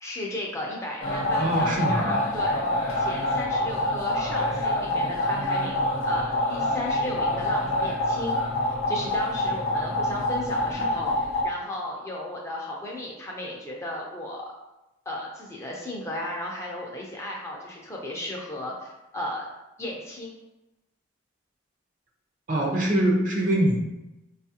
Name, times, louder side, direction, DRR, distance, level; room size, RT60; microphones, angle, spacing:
voice 1, 0.0-2.6 3.0-11.1 11.4-14.5 15.1-19.5 19.8-20.3, left 1 dB, 15° left, -3 dB, 0.5 m, -35 dB
sound 1, 1.0-11.4, left 1 dB, 85° left, 0.8 m, -26 dB
voice 2, 1.4-2.3 22.5-23.8, right 1 dB, 40° right, 0 dB, 0.6 m, -23 dB
4.9 x 2.4 x 2.8 m, 0.97 s
head